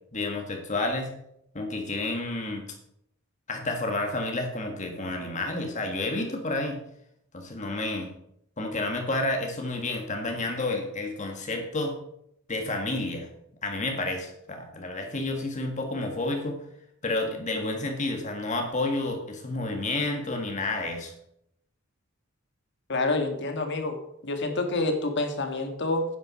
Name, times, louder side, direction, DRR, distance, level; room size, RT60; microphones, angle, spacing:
voice 1, 0.1-1.1 1.5-2.7 3.5-6.8 7.3-8.1 8.6-12.0 12.5-13.3 13.6-16.6 17.0-21.1, left 2 dB, 35° left, 3 dB, 1.8 m, -30 dB
voice 2, 22.9-24.0 24.2-26.0, left 2 dB, 60° left, 5 dB, 2.0 m, -27 dB
9.8 x 9.3 x 6.2 m, 0.75 s
head